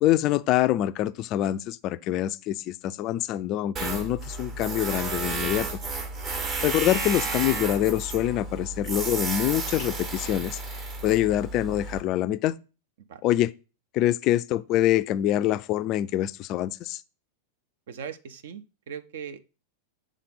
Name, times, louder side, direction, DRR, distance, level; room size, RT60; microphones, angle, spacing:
voice 1, 0.0-5.7 6.6-10.6 11.0-12.6 13.2-13.5 13.9-17.0, left 13 dB, 40° left, 0.3 m, -25 dB
Tools, 3.8-12.0, right 3 dB, 30° right, 1.0 m, -32 dB
voice 2, 6.3-6.7 13.1-13.2 17.9-19.4, right 7 dB, 55° right, 0.6 m, -40 dB
7.4 x 3.7 x 5.4 m
figure-of-eight pair, 90°, 0 cm